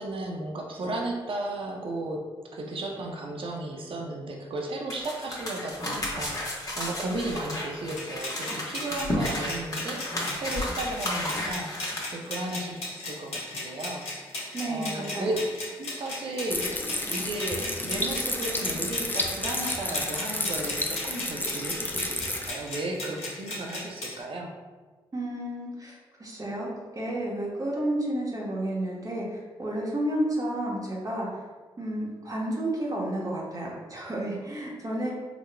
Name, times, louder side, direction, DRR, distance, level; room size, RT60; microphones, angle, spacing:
voice 1, 0.0-2.3 2.5-14.1 14.7-15.4 15.8-16.8 17.1-24.5, right 2 dB, 55° right, 1 dB, 0.7 m, -34 dB
sound 1, 4.9-12.0, left 1 dB, 35° left, 1.2 m, -33 dB
sound 2, 8.0-24.2, left 2 dB, 75° left, 1.1 m, -37 dB
voice 2, 14.5-15.4 25.1-26.7 26.9-31.3 31.8-35.1, right 1 dB, 35° right, -3 dB, 1.1 m, -31 dB
sound 3, 16.5-22.5, left 1 dB, 20° left, 0.5 m, -31 dB
4.0 x 2.9 x 2.2 m, 1.3 s
supercardioid pair, 45°, 11 cm